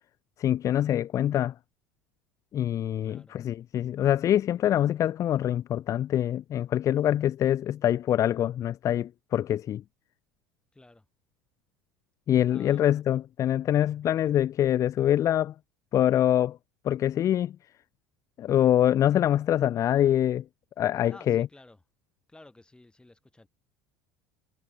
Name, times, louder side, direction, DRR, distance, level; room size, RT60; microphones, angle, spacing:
voice 1, 0.4-1.5 2.5-9.8 12.3-15.5 15.9-16.6 16.8-17.6 18.4-20.4 20.8-21.5, left 11 dB, 30° left, 0.4 m, -24 dB
voice 2, 3.0-3.4 10.7-11.0 12.5-12.9 21.1-21.8 22.3-23.5, left 2 dB, 10° left, 6.7 m, -53 dB
figure-of-eight pair, 70°, 10 cm